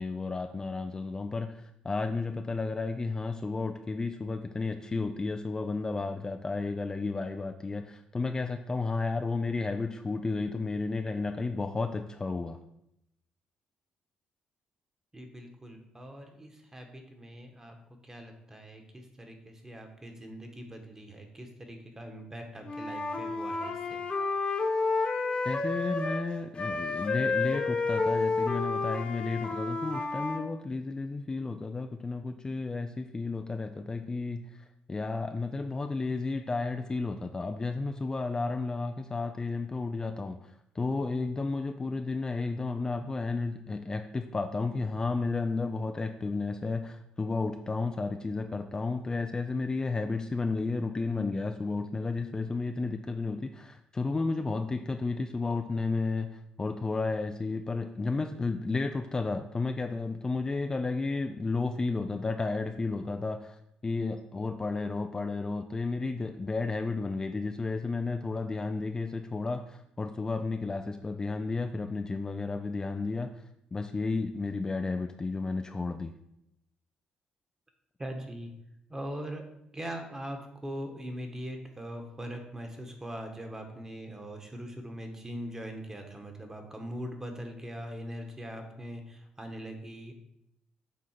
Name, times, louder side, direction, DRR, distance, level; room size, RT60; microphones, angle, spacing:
voice 1, 0.0-12.6 25.4-63.6 63.8-73.3 73.7-76.1, left 3 dB, 25° left, 6 dB, 0.4 m, -32 dB
voice 2, 15.1-24.0 78.0-78.5 78.9-79.5 79.7-90.1, equal, 15° right, 4 dB, 1.4 m, -41 dB
Wind instrument woodwind instrument, 22.6-26.3 26.5-30.4, left 3 dB, 40° left, 1.2 m, -30 dB
7.6 x 3.9 x 5.8 m, 0.81 s
cardioid pair, 100°, 3 cm